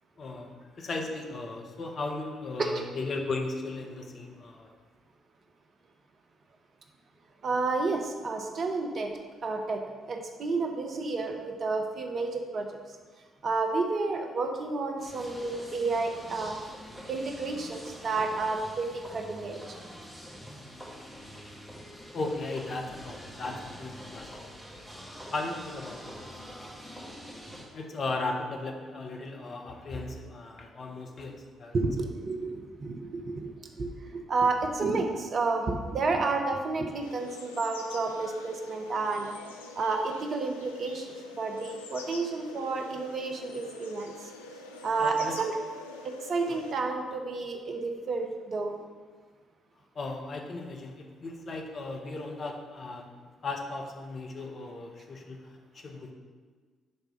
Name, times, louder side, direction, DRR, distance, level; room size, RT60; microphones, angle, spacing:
voice 1, 0.2-4.7 22.1-24.4 25.3-26.0 27.5-31.7 45.0-45.4 46.5-46.6 49.9-53.0 53.4-56.1, left 3 dB, 45° left, 2 dB, 0.8 m, -36 dB
voice 2, 7.4-9.1 9.4-12.8 13.4-16.6 17.1-19.6 31.7-33.5 33.8-39.3 39.8-41.1 41.3-44.1 44.8-45.5 46.3-48.7, right 3 dB, 50° right, 4 dB, 0.8 m, -30 dB
sound 1, 15.0-27.7, equal, 5° left, 1.7 m, -45 dB
sound 2, 37.0-46.7, left 4 dB, 85° left, 0.4 m, -45 dB
5.5 x 3.5 x 5.6 m, 1.5 s
hypercardioid pair, 45°, 0 cm